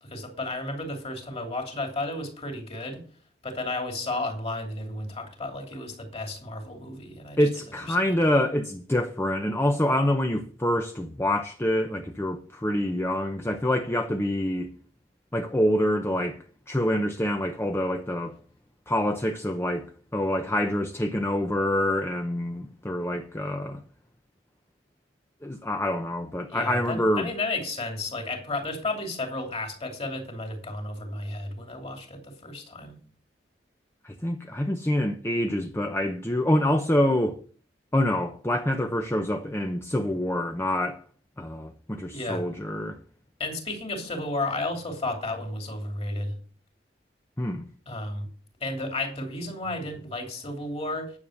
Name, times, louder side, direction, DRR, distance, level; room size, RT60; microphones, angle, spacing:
voice 1, 0.0-3.0 3.4-7.4 7.9-8.1 26.5-33.0 42.1-42.4 43.4-46.3 47.9-48.3 48.6-51.1, left 2 dB, 35° left, 3.0 m, -33 dB
voice 2, 7.4-14.7 15.3-16.4 16.7-18.3 18.9-19.9 20.1-23.8 25.4-27.3 34.0-37.4 37.9-41.0 41.4-43.0 47.4-47.6, left 1 dB, 15° left, 0.7 m, -26 dB
9.7 x 7.2 x 6.5 m
head